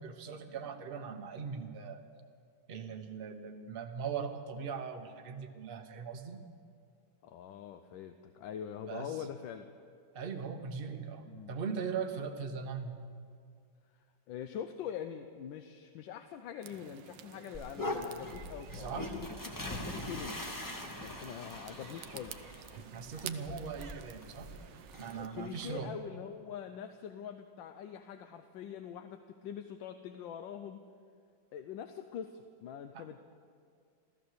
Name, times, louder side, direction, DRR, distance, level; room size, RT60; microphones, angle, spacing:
voice 1, 0.0-2.0 2.7-6.4 8.9-9.2 10.1-13.0 18.7-19.1 22.7-24.5 25.0-26.0 32.9-33.0, right 6 dB, 40° right, 6 dB, 0.9 m, -40 dB
voice 2, 7.2-9.7 11.3-11.5 14.3-20.4 21.0-22.4 25.1-30.8 31.5-33.2, left 8 dB, 80° left, 8 dB, 1.4 m, -44 dB
sound 1, 16.6-25.3, right 11 dB, 75° right, 1.3 m, -51 dB
sound 2, 17.5-25.8, left 1 dB, 15° left, 0.8 m, -42 dB
15.0 x 14.0 x 6.5 m, 2.2 s
omnidirectional pair, 2.1 m